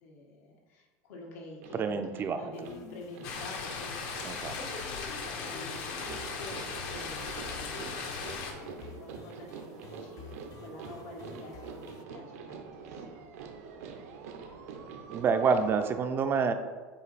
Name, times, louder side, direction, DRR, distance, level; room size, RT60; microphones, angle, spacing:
voice 1, 0.0-13.3, left 2 dB, 85° left, -2 dB, 1.7 m, -48 dB
sound 1, 1.6-15.9, right 5 dB, 85° right, 0.8 m, -46 dB
voice 2, 1.7-2.7 4.2-4.6 15.1-16.5, right 5 dB, 30° right, 8 dB, 0.4 m, -28 dB
sound 2, 2.5-12.0, left 6 dB, 45° left, 0.5 m, -51 dB
sound 3, 3.2-8.5, left 5 dB, 60° left, 1.0 m, -38 dB
7.7 x 2.6 x 5.0 m, 1.4 s
supercardioid pair, 140°, 8 cm